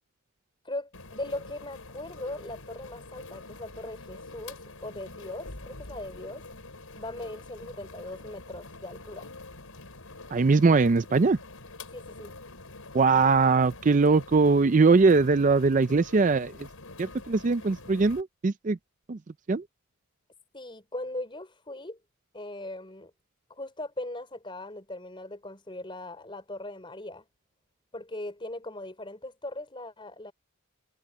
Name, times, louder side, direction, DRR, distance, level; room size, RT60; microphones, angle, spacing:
voice 1, 0.6-6.5 6.9-9.3 11.9-12.3 20.5-22.0 22.3-23.1 23.5-27.2 27.9-30.3, left 1 dB, 25° left, 4.2 m, -39 dB
sound 1, 0.9-18.2, left 2 dB, 85° left, 4.5 m, -46 dB
voice 2, 10.3-11.4 12.9-16.5 17.0-18.8 19.1-19.2 19.5-19.6, right 4 dB, 35° right, 0.4 m, -21 dB
head